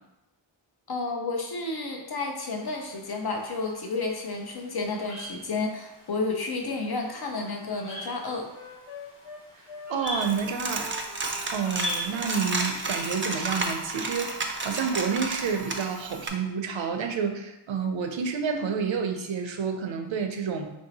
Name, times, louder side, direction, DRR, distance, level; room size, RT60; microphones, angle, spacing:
voice 1, 0.9-8.5, left 3 dB, 50° left, 2 dB, 0.8 m, -31 dB
sound 1, 2.4-12.9, left 1 dB, 25° left, 1.0 m, -42 dB
Wind instrument woodwind instrument, 6.8-9.4 9.7-12.4, left 1 dB, 80° left, 1.2 m, -45 dB
voice 2, 9.9-10.9 11.5-20.7, right 6 dB, 75° right, 5 dB, 0.6 m, -29 dB
Coin (dropping), 10.1-16.3, right 3 dB, 25° right, 0.4 m, -32 dB
3.1 x 2.7 x 4.0 m, 0.92 s
wide cardioid pair, 80°, 47 cm